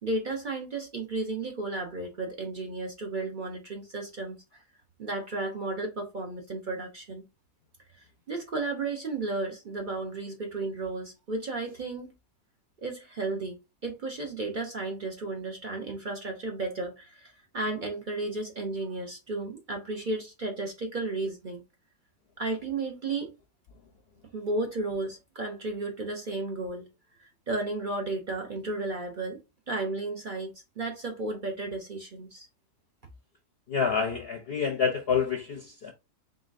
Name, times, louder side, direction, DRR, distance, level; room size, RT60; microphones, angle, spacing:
voice 1, 0.0-4.6 5.0-7.2 8.3-12.1 12.8-21.6 22.4-23.3 24.3-26.9 27.2-29.4 29.7-32.5, right 2 dB, 45° right, 0.6 m, -33 dB
voice 2, 33.7-35.9, left 6 dB, 55° left, 0.7 m, -28 dB
3.9 x 3.7 x 2.5 m
omnidirectional pair, 1.6 m